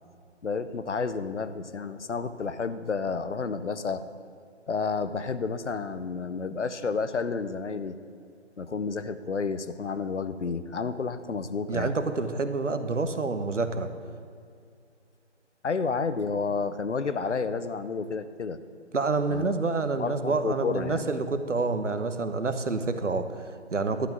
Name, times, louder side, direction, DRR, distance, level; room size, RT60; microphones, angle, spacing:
voice 1, 0.4-4.0 4.7-8.0 8.6-11.9 15.6-18.6 19.3-19.5 20.0-21.0, left 4 dB, 75° left, 12 dB, 0.9 m, -30 dB
voice 2, 11.7-13.9 18.9-24.1, right 3 dB, 85° right, 9 dB, 1.1 m, -28 dB
11.5 x 6.1 x 9.1 m, 2.3 s
figure-of-eight pair, 155°, 36 cm